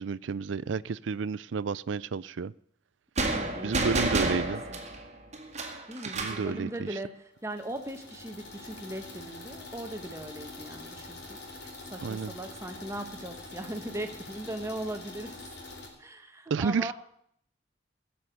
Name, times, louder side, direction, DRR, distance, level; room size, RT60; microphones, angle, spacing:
voice 1, 0.0-2.5 3.6-4.6 6.1-6.9 12.0-12.3 16.5-16.9, right 5 dB, 90° right, 20 dB, 0.5 m, -31 dB
voice 2, 3.2-4.8 5.9-11.4 11.9-15.3 16.0-16.9, right 1 dB, 15° right, 6 dB, 1.3 m, -39 dB
sound 1, 3.2-6.5, right 2 dB, 40° right, 1.9 m, -30 dB
sound 2, 7.4-15.9, left 2 dB, 60° left, 4.2 m, -45 dB
17.0 x 7.0 x 7.8 m, 0.67 s
head